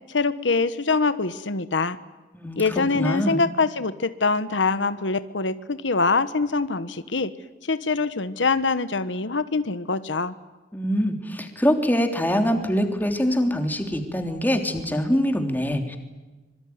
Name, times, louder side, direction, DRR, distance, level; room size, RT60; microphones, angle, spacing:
voice 1, 0.1-2.0 2.6-7.3 7.7-10.3, left 4 dB, 85° left, 13 dB, 1.2 m, -24 dB
voice 2, 2.3-3.4 10.7-16.0, equal, 10° left, 5 dB, 3.4 m, -24 dB
25.5 x 24.0 x 9.6 m, 1.2 s
head